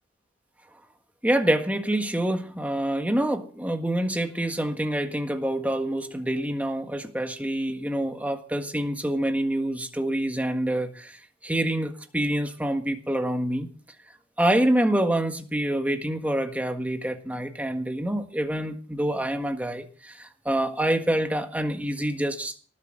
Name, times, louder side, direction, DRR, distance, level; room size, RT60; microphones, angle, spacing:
voice 1, 1.2-13.7 14.4-22.6, right 1 dB, 10° right, 6 dB, 1.6 m, -26 dB
18.5 x 8.4 x 6.6 m, 0.42 s
head